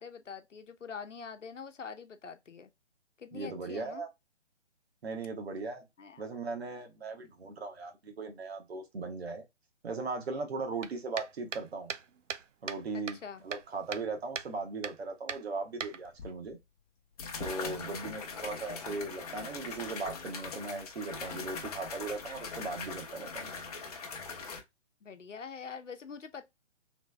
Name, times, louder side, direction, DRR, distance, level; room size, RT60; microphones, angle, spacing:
voice 1, 0.0-2.7 3.2-4.0 6.0-6.2 12.9-13.4 17.6-18.0 25.0-26.4, left 6 dB, 85° left, 0.8 m, -45 dB
voice 2, 3.3-4.1 5.0-5.8 6.2-9.4 9.8-11.9 12.6-13.2 13.4-16.6 17.4-23.5, right 3 dB, 60° right, 1.1 m, -38 dB
sound 1, 10.8-12.8 13.1-14.1 14.4-14.5 14.8-15.0 15.3-16.3, right 7 dB, 90° right, 0.5 m, -39 dB
sound 2, 16.2-16.3 17.2-24.6, left 5 dB, 30° left, 0.7 m, -41 dB
3.3 x 3.3 x 3.2 m
figure-of-eight pair, 145°, 36 cm